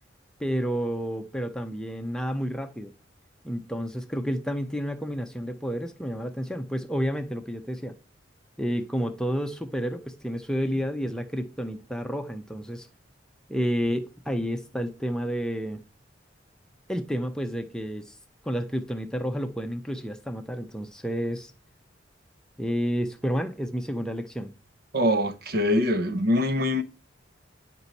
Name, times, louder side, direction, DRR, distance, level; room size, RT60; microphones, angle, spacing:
voice 1, 0.4-2.9 3.4-7.9 8.6-12.9 13.5-15.8 16.9-18.2 18.4-21.5 22.6-24.5, equal, 5° left, 0.7 m, -30 dB
voice 2, 24.9-26.8, left 1 dB, 55° right, 0.8 m, -23 dB
9.5 x 5.3 x 4.2 m
head